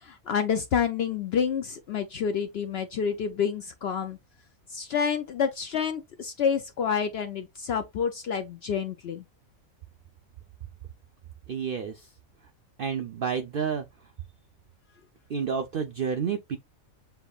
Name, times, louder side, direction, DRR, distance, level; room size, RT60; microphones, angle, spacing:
voice 1, 0.0-4.2 4.7-9.2, left 7 dB, 65° left, 0.6 m, -28 dB
voice 2, 11.5-12.1 12.8-13.9 15.3-16.6, right 6 dB, 65° right, 0.5 m, -30 dB
6.8 x 2.9 x 2.3 m
omnidirectional pair, 1.5 m